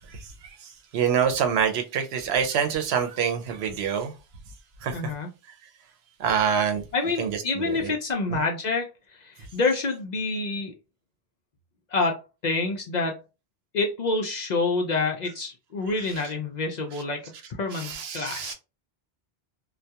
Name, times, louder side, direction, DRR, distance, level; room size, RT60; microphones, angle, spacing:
voice 1, 0.9-4.1 4.8-5.0 6.2-6.8 7.2-7.9 8.3-8.4 17.7-18.5, right 7 dB, 80° right, 0.8 m, -26 dB
voice 2, 4.9-5.3 6.9-8.9 9.2-10.7 11.9-13.2 13.7-17.3 17.6-18.5, left 3 dB, 55° left, 0.5 m, -27 dB
2.2 x 2.2 x 2.7 m
omnidirectional pair, 1.0 m